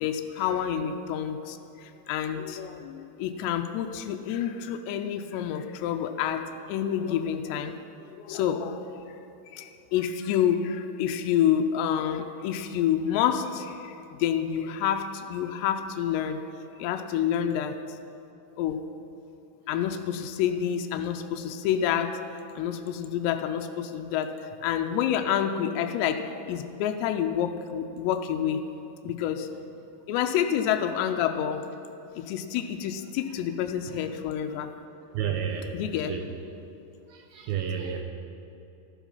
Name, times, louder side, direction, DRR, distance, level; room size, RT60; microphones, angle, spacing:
voice 1, 0.0-7.8 8.1-9.2 9.5-16.4 16.8-17.8 18.6-18.8 19.7-22.2 22.6-28.6 29.0-29.5 30.1-31.7 32.2-34.7 35.7-36.1, left 9 dB, 90° left, 6 dB, 2.8 m, -28 dB
voice 2, 35.1-35.7 36.1-36.3 37.1-38.0, right 8 dB, 70° right, 4 dB, 2.5 m, -31 dB
13.5 x 13.5 x 5.6 m, 2.9 s
omnidirectional pair, 4.9 m